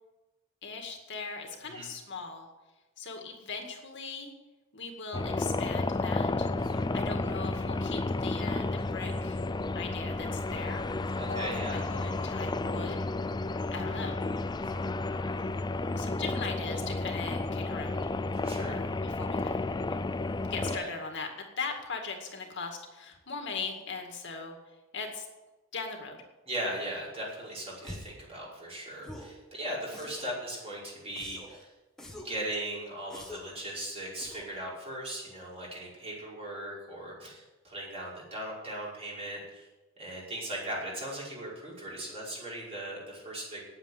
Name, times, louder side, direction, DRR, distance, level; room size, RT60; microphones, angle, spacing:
voice 1, 0.6-2.5 3.0-4.3 4.7-6.5 6.9-9.4 9.8-10.8 11.3-13.0 13.7-14.2 15.7-18.0 18.7-20.0 20.5-21.3 21.6-24.6 24.9-25.3 25.7-26.2 29.9-30.1, left 4 dB, 60° left, 3 dB, 2.1 m, -39 dB
sound 1, 5.1-20.8, left 2 dB, 20° left, 0.4 m, -32 dB
voice 2, 6.6-6.9 11.2-11.8 14.6-14.9 18.3-18.8 20.7-20.9 26.5-31.7 32.1-39.7 40.0-43.6, right 1 dB, 30° right, -5 dB, 5.3 m, -38 dB
sound 2, 27.8-28.2 29.0-29.4 29.9-30.4 31.2-31.6 32.0-32.4 33.1-33.6 34.2-34.6, left 1 dB, 5° left, 1.8 m, -45 dB
9.7 x 9.0 x 9.3 m, 1.1 s
head